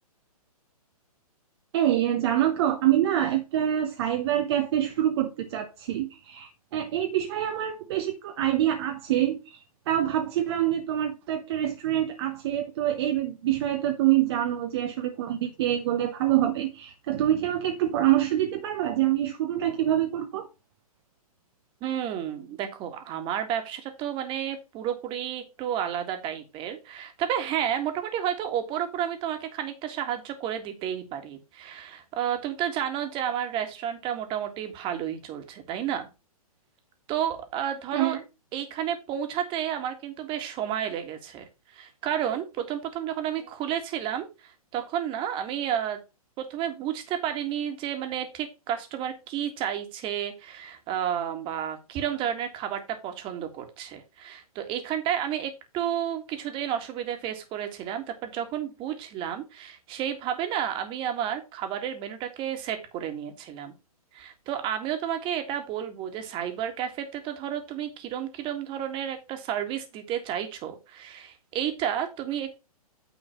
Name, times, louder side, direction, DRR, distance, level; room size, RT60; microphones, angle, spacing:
voice 1, 1.7-20.5 37.9-38.2, right 12 dB, 45° right, 1.0 m, -26 dB
voice 2, 21.8-36.1 37.1-38.2 38.5-46.0 46.4-63.7 64.1-72.5, right 10 dB, 25° right, 1.9 m, -31 dB
9.4 x 3.8 x 5.7 m
hypercardioid pair, 135°, 19 cm